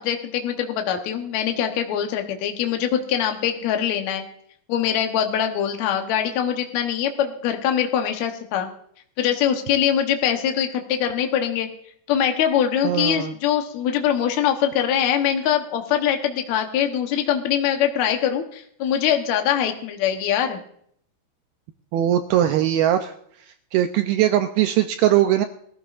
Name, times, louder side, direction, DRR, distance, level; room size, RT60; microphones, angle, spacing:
voice 1, 0.0-4.2 4.7-8.7 9.2-11.7 12.1-20.6, left 9 dB, 85° left, 4 dB, 1.6 m, -23 dB
voice 2, 12.8-13.3 21.9-23.1 23.7-25.4, right 12 dB, 80° right, 7 dB, 2.2 m, -20 dB
20.5 x 14.0 x 2.5 m, 0.67 s
omnidirectional pair, 4.9 m